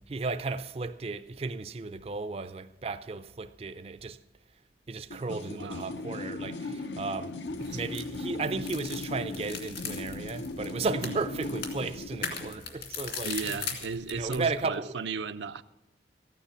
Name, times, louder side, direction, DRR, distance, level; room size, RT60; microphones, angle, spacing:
voice 1, 0.1-4.2 4.9-7.4 7.7-13.6 14.1-15.0, right 3 dB, 35° right, 0.4 m, -34 dB
sound 1, 5.1-12.6, left 2 dB, 85° left, 0.8 m, -38 dB
voice 2, 5.3-6.0 7.6-7.8 11.0-11.2 13.2-15.6, right 5 dB, 80° right, 0.5 m, -35 dB
sound 2, 7.5-14.5, left 6 dB, 70° left, 2.5 m, -40 dB
14.5 x 9.2 x 7.0 m
head